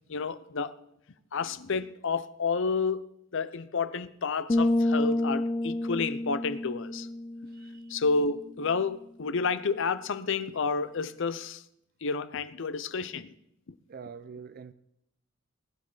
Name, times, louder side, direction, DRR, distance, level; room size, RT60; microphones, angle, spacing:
voice 1, 0.1-0.7 1.3-3.1 3.3-7.1 7.9-11.6 12.0-13.3, left 4 dB, 65° left, 0.6 m, -30 dB
sound 1, 4.5-8.2, left 1 dB, 20° left, 0.4 m, -29 dB
voice 2, 7.5-7.9 13.9-14.7, right 6 dB, 50° right, 0.5 m, -45 dB
20.0 x 9.7 x 4.0 m
head